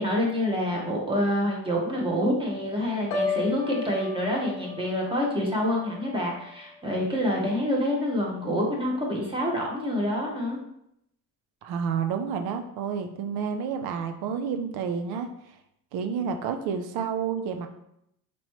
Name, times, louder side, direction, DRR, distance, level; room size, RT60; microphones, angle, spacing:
voice 1, 0.0-10.6, left 1 dB, 15° right, -3 dB, 1.1 m, -27 dB
Piano, 3.1-7.1 7.4-7.8, left 4 dB, 80° left, 0.8 m, -35 dB
voice 2, 11.6-15.3 15.9-17.7, right 6 dB, 75° right, 7 dB, 0.7 m, -30 dB
4.2 x 3.1 x 3.0 m, 0.77 s
cardioid pair, 120°, 38 cm